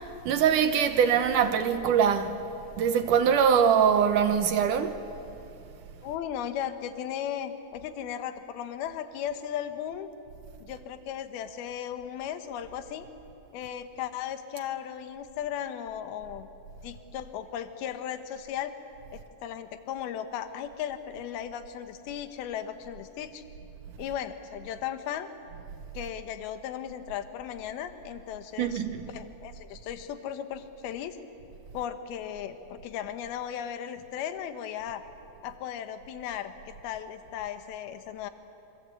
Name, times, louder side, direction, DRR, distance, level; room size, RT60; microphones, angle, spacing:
voice 1, 0.3-2.4 2.8-5.0 28.6-29.1, right 7 dB, 70° right, 2.2 m, -23 dB
voice 2, 6.0-10.1 10.6-13.1 13.5-16.5 16.8-18.7 19.1-23.4 24.0-25.3 25.9-28.8 29.1-31.2 31.7-35.0 35.4-38.3, left 9 dB, 85° left, 3.0 m, -36 dB
27.5 x 25.5 x 8.3 m
omnidirectional pair, 4.3 m